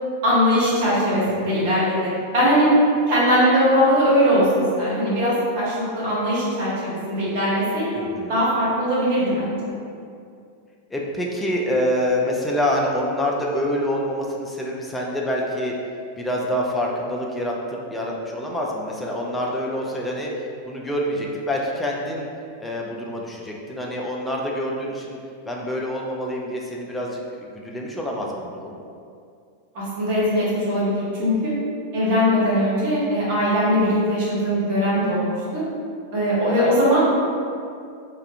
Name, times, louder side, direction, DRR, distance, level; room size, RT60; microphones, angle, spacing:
voice 1, 0.2-2.7 3.1-7.9 8.3-9.7 29.7-31.5 31.9-35.6 36.1-37.0, equal, 50° right, -8 dB, 0.9 m, -20 dB
voice 2, 8.0-8.3 10.9-15.7 16.2-22.3 22.6-25.2 25.5-27.2 27.5-28.8, equal, 10° left, -2 dB, 0.3 m, -26 dB
2.3 x 2.1 x 2.6 m, 2.4 s
figure-of-eight pair, 90°, 0 cm